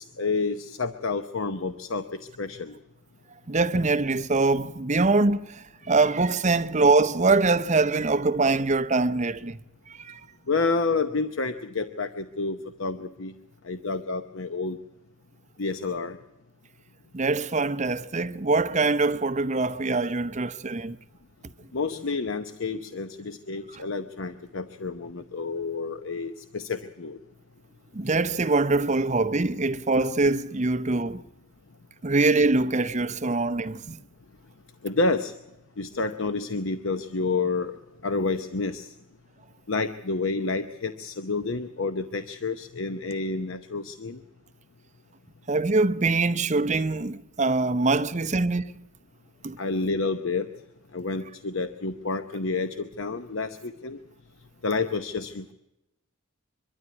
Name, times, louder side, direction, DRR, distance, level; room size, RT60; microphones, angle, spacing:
voice 1, 0.0-2.8 10.5-13.3 13.6-14.8 15.6-16.2 21.7-27.2 34.8-35.3 35.8-37.8 38.0-38.9 39.7-44.2 49.6-50.5 50.9-54.0 54.6-55.5, left 3 dB, 65° left, 0.8 m, -29 dB
voice 2, 3.5-9.6 9.9-10.2 17.1-21.0 27.9-31.2 32.0-34.0 45.5-48.8 49.4-49.6, right 3 dB, 35° right, 0.7 m, -23 dB
23.5 x 12.5 x 9.6 m
head